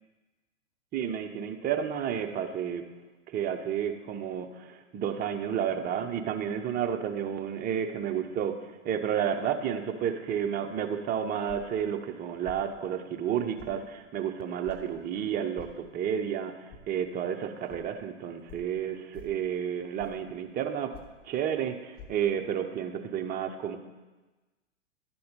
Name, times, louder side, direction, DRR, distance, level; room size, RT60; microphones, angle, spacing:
voice 1, 0.9-2.8 3.3-8.6 8.8-20.9 21.2-23.8, right 8 dB, 25° right, 5 dB, 0.7 m, -31 dB
sound 1, 11.5-11.8 12.4-12.7 13.6-13.8 14.6-14.8 15.5-15.8 16.7-16.8 17.7-17.8 18.5-18.7 19.1-19.4 20.0-20.3 20.9-21.2 21.9-22.1, left 5 dB, 35° left, 1.2 m, -47 dB
10.5 x 4.2 x 6.6 m, 1.2 s
hypercardioid pair, 110°, 38 cm